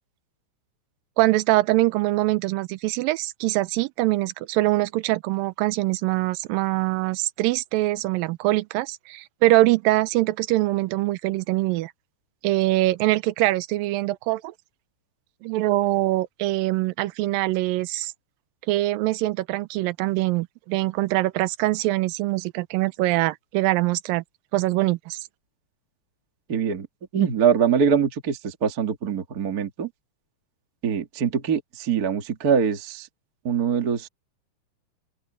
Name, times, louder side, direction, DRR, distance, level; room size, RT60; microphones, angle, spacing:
voice 1, 1.2-11.9 12.4-14.5 15.4-18.1 18.7-24.2 24.5-25.3, right 18 dB, 80° right, 2.0 m, -23 dB
voice 2, 26.5-26.9 27.1-29.9 30.8-33.1 33.4-34.1, right 7 dB, 40° right, 1.4 m, -23 dB
open air
omnidirectional pair, 4.8 m